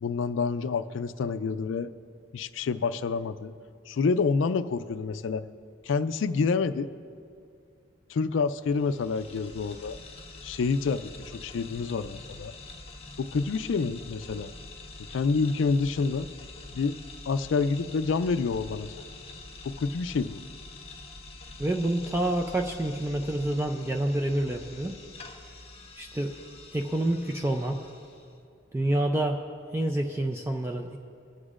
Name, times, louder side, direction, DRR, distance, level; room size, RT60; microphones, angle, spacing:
voice 1, 0.0-1.9 2.3-3.5 3.9-5.4 5.8-6.9 8.1-10.0 10.4-12.5 13.2-14.5 15.1-16.3 16.7-17.0 17.3-18.9 19.6-20.4, left 4 dB, 70° left, 12 dB, 0.4 m, -28 dB
sound 1, 8.6-28.3, left 2 dB, 30° left, 1.0 m, -46 dB
voice 2, 21.6-24.9 26.0-26.3 26.7-27.8 28.7-29.4 29.7-31.0, right 1 dB, 15° right, 3 dB, 0.4 m, -28 dB
21.5 x 8.1 x 2.5 m, 2.4 s
head